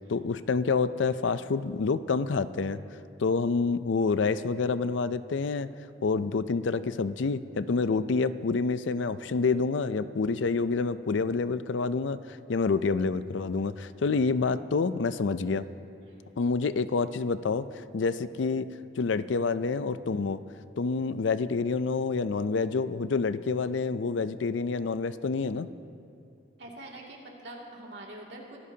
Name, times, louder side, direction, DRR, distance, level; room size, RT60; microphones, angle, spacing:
voice 1, 0.1-2.8 3.2-5.7 6.0-15.7 16.4-17.7 17.9-20.4 20.8-25.7, left 4 dB, 80° left, 14 dB, 0.5 m, -28 dB
voice 2, 26.6-28.6, right 1 dB, 65° right, -2 dB, 2.4 m, -45 dB
23.5 x 15.0 x 2.8 m, 2.5 s
head